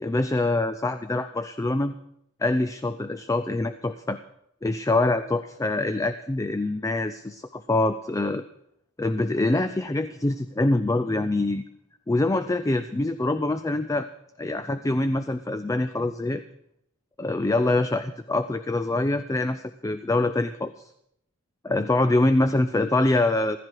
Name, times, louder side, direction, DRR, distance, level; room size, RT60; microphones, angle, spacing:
voice 1, 0.0-1.9 2.4-4.2 4.6-8.4 9.0-11.6 12.1-14.1 14.4-16.4 17.2-20.9 21.6-23.6, left 2 dB, 15° left, 11 dB, 0.4 m, -25 dB
15.0 x 14.0 x 4.7 m, 0.75 s
head